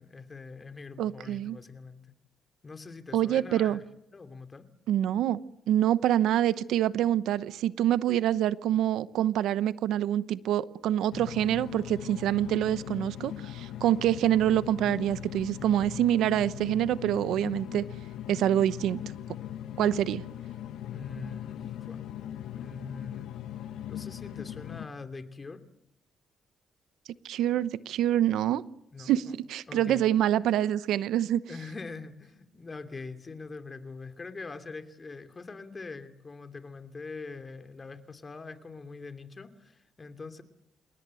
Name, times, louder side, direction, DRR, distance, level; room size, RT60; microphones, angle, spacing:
voice 1, 0.0-2.1 2.6-3.8 4.1-4.7 20.9-22.0 22.5-23.3 23.6-25.6 28.9-29.3 29.7-30.0 31.5-40.4, left 4 dB, 30° left, 8 dB, 2.8 m, -43 dB
voice 2, 1.0-1.6 3.1-3.8 4.9-5.4 5.7-17.8 18.3-19.0 19.8-20.2 27.2-28.6 29.0-31.4, right 11 dB, 80° right, 16 dB, 0.9 m, -26 dB
sound 1, 11.1-24.9, left 11 dB, 80° left, 1.5 m, -39 dB
29.0 x 18.5 x 7.8 m, 0.81 s
cardioid pair, 90°, 0 cm